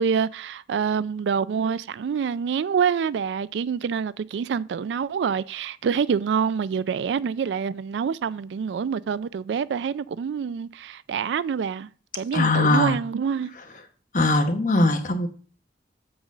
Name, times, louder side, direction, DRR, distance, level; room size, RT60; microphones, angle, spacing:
voice 1, 0.0-13.5, right 6 dB, 80° right, 0.3 m, -26 dB
voice 2, 12.3-13.0 14.1-15.3, left 2 dB, 45° left, 1.1 m, -20 dB
7.8 x 3.9 x 6.4 m
head